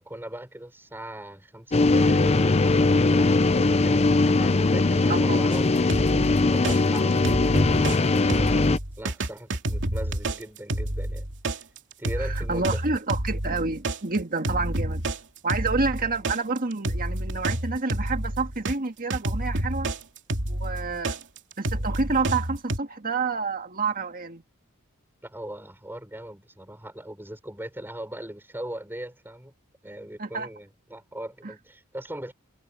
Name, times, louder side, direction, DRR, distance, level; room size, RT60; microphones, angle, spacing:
voice 1, 0.0-5.8 6.5-11.3 12.0-12.8 25.2-29.5 29.8-32.3, right 1 dB, 10° right, 5.8 m, -39 dB
sound 1, 1.7-8.8, left 3 dB, 30° left, 0.6 m, -20 dB
voice 2, 5.1-5.5 12.2-15.0 15.4-19.9 20.5-21.2 21.6-24.4 30.2-30.5 31.4-31.5, right 4 dB, 40° right, 1.8 m, -29 dB
sound 2, 5.5-8.0 8.3-18.7 19.1-22.8, right 1 dB, 60° right, 2.9 m, -29 dB
head